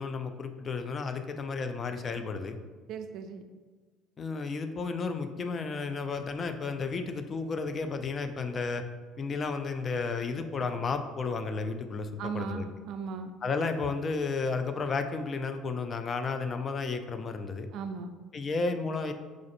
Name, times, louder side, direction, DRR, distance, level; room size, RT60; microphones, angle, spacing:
voice 1, 0.0-2.6 4.2-8.8 9.2-12.6 13.4-17.7 18.3-19.1, left 4 dB, 40° left, 7 dB, 0.4 m, -32 dB
voice 2, 2.9-3.5 12.2-13.3 17.7-18.1, right 5 dB, 60° right, 7 dB, 0.3 m, -37 dB
4.9 x 2.5 x 2.5 m, 1.4 s
hypercardioid pair, 65°, 0 cm